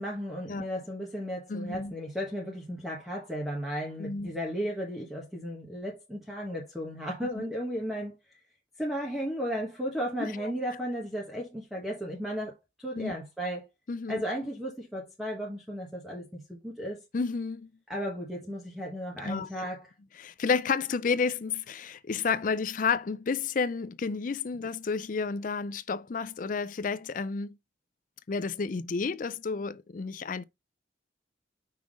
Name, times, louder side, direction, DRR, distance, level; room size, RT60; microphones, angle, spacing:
voice 1, 0.0-8.1 8.8-12.5 12.8-13.7 14.1-17.0 17.9-19.8, equal, ahead, 1.2 m, -34 dB
voice 2, 1.5-1.9 4.0-4.4 10.2-10.5 12.9-13.2 13.9-14.2 17.1-17.7 19.2-19.7 20.2-27.6 28.3-30.4, left 5 dB, 45° left, 0.4 m, -31 dB
5.7 x 3.6 x 4.9 m
head